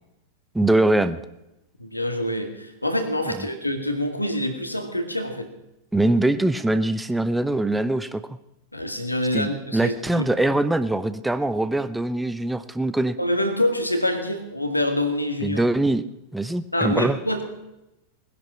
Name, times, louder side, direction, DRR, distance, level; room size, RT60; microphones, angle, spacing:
voice 1, 0.5-1.2 5.9-8.2 9.3-13.2 15.4-16.0 16.3-17.2, right 2 dB, 5° right, 13 dB, 0.8 m, -22 dB
voice 2, 1.8-5.5 8.7-10.2 13.2-15.6 16.7-17.4, left 1 dB, 85° left, 6 dB, 2.1 m, -26 dB
20.0 x 10.5 x 6.2 m, 0.92 s
figure-of-eight pair, 90°, 0 cm